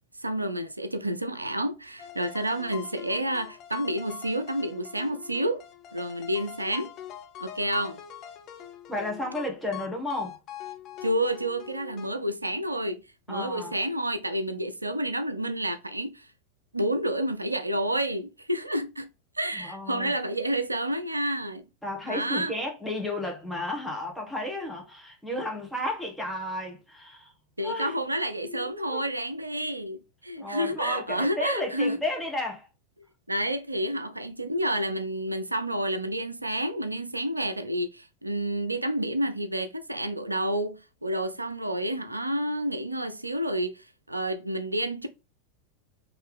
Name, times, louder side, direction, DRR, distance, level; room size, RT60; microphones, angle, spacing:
voice 1, 0.2-5.6 5.9-6.9 7.4-8.0 11.0-13.0 13.3-16.3 16.7-19.1 19.4-21.6 22.1-22.5 27.6-32.0 33.3-45.1, right 1 dB, 85° right, 0.4 m, -29 dB
sound 1, 2.0-12.1, left 11 dB, 35° left, 0.6 m, -43 dB
voice 2, 8.9-10.4 13.3-13.7 19.6-20.1 21.8-27.3 27.6-28.0 28.4-29.1 30.4-32.7, left 1 dB, ahead, 1.4 m, -33 dB
3.6 x 3.1 x 3.2 m
figure-of-eight pair, 90°, 0 cm